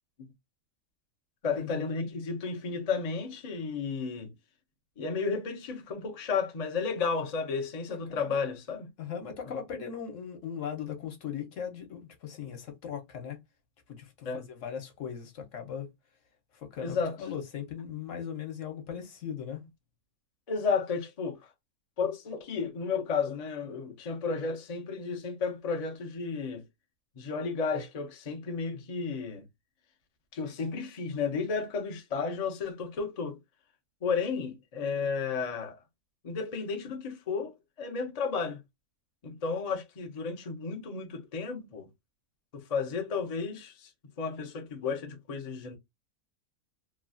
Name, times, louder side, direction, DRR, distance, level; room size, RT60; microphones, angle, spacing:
voice 1, 1.4-4.3 5.0-8.9 9.5-9.6 14.2-14.4 16.8-17.2 20.5-21.4 22.0-26.6 27.2-29.4 30.3-33.4 34.0-35.8 36.2-38.6 39.2-41.9 42.5-43.9 44.2-45.8, left 5 dB, 50° left, 0.4 m, -33 dB
voice 2, 7.9-8.3 9.0-13.4 13.9-15.9 16.5-19.6, left 8 dB, 65° left, 1.1 m, -39 dB
3.1 x 2.3 x 2.4 m
omnidirectional pair, 1.5 m